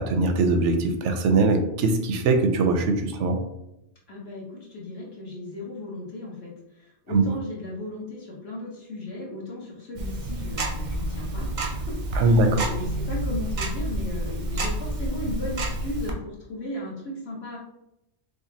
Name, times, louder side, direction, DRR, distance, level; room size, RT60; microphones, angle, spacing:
voice 1, 0.0-3.4 7.1-7.2 12.2-12.7, right 3 dB, 90° right, 5 dB, 0.9 m, -21 dB
voice 2, 4.1-17.6, left 2 dB, 60° left, -4 dB, 1.4 m, -36 dB
Tick-tock, 10.0-16.1, right 1 dB, 50° right, 0.6 m, -29 dB
3.8 x 3.2 x 2.7 m, 0.86 s
omnidirectional pair, 1.2 m